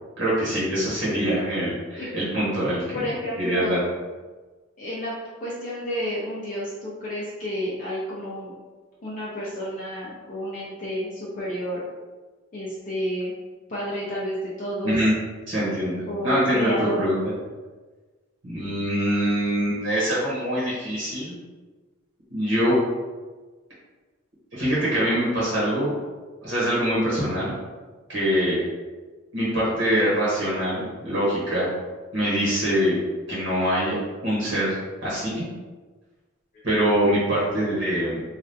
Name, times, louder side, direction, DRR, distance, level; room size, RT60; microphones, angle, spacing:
voice 1, 0.2-3.0 3.4-3.8 14.8-15.1 15.5-17.2 18.4-21.4 22.3-22.8 24.5-25.9 26.4-27.5 28.1-28.6 29.3-31.7 32.1-33.0 33.3-33.9 34.2-34.8 35.0-35.5 36.6-38.2, equal, 65° right, -8 dB, 1.0 m, -24 dB
voice 2, 2.9-3.8 4.8-5.1 5.4-8.5 9.0-11.8 12.5-13.3 13.7-15.0 16.0-17.0 36.5-36.6, equal, 40° left, -7 dB, 0.6 m, -30 dB
3.3 x 2.4 x 2.6 m, 1.3 s
head